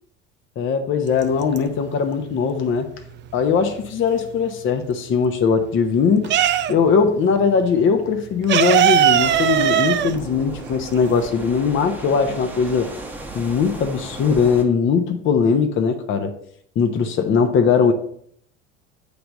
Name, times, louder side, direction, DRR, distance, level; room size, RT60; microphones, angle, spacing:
voice 1, 0.6-2.9 3.3-6.3 6.7-12.9 13.3-16.3 16.8-17.9, left 6 dB, 30° left, 6 dB, 0.7 m, -20 dB
sound 1, 1.1-2.0 2.3-4.3 4.7-7.1 7.3-7.5 7.7-11.3, right 11 dB, 30° right, 0.5 m, -19 dB
sound 2, 9.2-14.6, right 2 dB, 5° right, 0.9 m, -35 dB
7.9 x 3.4 x 5.1 m, 0.64 s
figure-of-eight pair, 65°, 39 cm